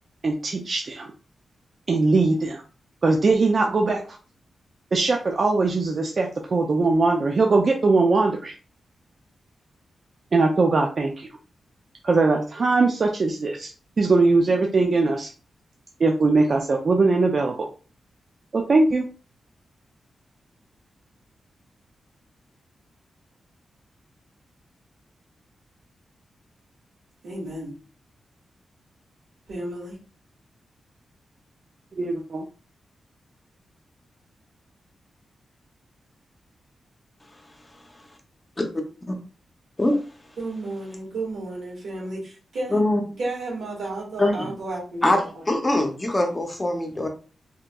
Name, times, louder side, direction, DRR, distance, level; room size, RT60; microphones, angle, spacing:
voice 1, 0.2-1.1 1.9-2.6 3.0-4.0 4.9-8.5 10.3-11.3 12.0-13.7 14.0-15.3 16.0-17.7 18.5-19.0 32.0-32.4, right 3 dB, 40° right, 2 dB, 0.3 m, -21 dB
voice 2, 27.2-27.7 29.5-30.0 40.4-42.8 43.2-45.3, right 2 dB, 85° right, -3 dB, 1.6 m, -32 dB
voice 3, 42.7-43.0 44.2-44.5 45.0-47.1, left 1 dB, 15° left, 3 dB, 0.5 m, -22 dB
3.2 x 2.9 x 2.2 m, 0.36 s
wide cardioid pair, 175°, 0 cm